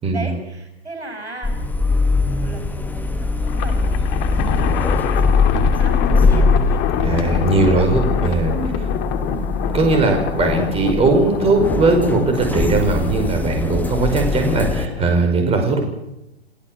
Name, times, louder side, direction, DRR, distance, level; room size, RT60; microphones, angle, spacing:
voice 1, 0.1-2.1 2.4-3.1 3.6-4.2 5.8-6.8 7.2-7.9 8.5-8.8 9.1-9.4, right 2 dB, 90° right, 6 dB, 6.6 m, -34 dB
sound 1, 1.4-14.9, left 3 dB, 5° left, 1.8 m, -21 dB
Thunder, 3.4-15.2, left 8 dB, 30° left, 2.9 m, -25 dB
voice 2, 7.0-8.5 9.7-15.8, right 3 dB, 20° right, 4 dB, 5.2 m, -18 dB
30.0 x 16.0 x 7.7 m, 0.92 s
figure-of-eight pair, 115°, 32 cm